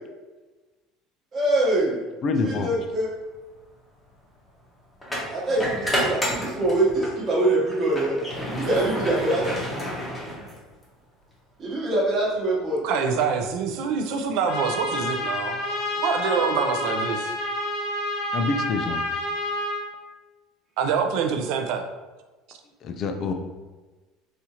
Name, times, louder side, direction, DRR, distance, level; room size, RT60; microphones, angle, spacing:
voice 1, 1.3-2.0 2.4-3.1 5.3-9.4 11.6-12.8, right 2 dB, 25° right, -6 dB, 0.9 m, -24 dB
voice 2, 2.2-2.7 18.3-19.0 22.8-23.3, left 3 dB, 35° left, 6 dB, 0.3 m, -26 dB
sound 1, 2.9-3.1 5.0-7.2 7.6-10.8, equal, 5° left, 0.7 m, -30 dB
voice 3, 12.8-15.6 15.9-17.4 20.8-21.8 22.5-22.6, right 6 dB, 60° right, 5 dB, 0.4 m, -25 dB
Trumpet, 14.5-19.8, left 1 dB, 60° left, 0.8 m, -29 dB
4.2 x 2.4 x 2.8 m, 1.2 s
cardioid pair, 175°, 0 cm